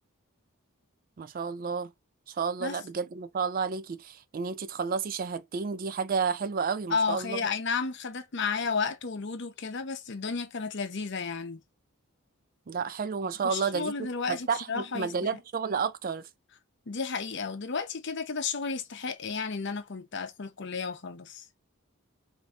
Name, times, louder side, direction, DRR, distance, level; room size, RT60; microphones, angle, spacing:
voice 1, 1.2-1.9 2.3-7.4 12.7-16.3, right 5 dB, 40° right, 0.4 m, -31 dB
voice 2, 6.9-11.6 13.4-15.1 16.9-21.4, left 5 dB, 55° left, 0.7 m, -32 dB
5.1 x 2.7 x 2.4 m
head